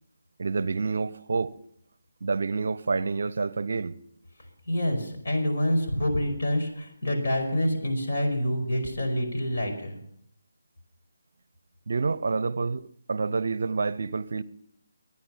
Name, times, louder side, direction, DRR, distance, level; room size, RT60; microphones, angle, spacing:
voice 1, 0.4-1.5 2.2-3.9 11.9-14.4, right 4 dB, 60° right, 0.6 m, -28 dB
voice 2, 4.7-9.9, equal, 50° left, 5.1 m, -27 dB
24.5 x 9.7 x 5.6 m
figure-of-eight pair, 150°, 0 cm